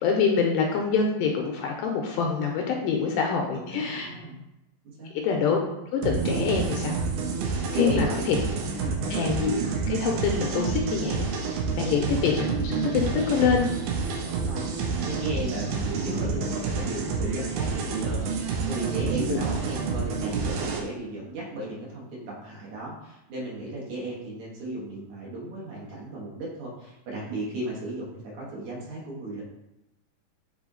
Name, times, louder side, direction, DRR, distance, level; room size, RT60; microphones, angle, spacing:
voice 1, 0.0-4.1 5.2-5.6 5.9-6.9 7.8-8.4 9.1-9.5 9.9-13.7 19.3-19.4, left 6 dB, 80° left, 1 dB, 2.1 m, -25 dB
voice 2, 3.5-4.4 4.8-5.1 7.7-8.2 8.8-9.0 11.8-12.0 14.5-14.7 15.0-29.4, right 2 dB, 60° right, -5 dB, 2.4 m, -35 dB
sound 1, 6.0-20.8, right 4 dB, 75° right, 2.4 m, -28 dB
7.5 x 3.4 x 3.8 m, 0.91 s
omnidirectional pair, 4.2 m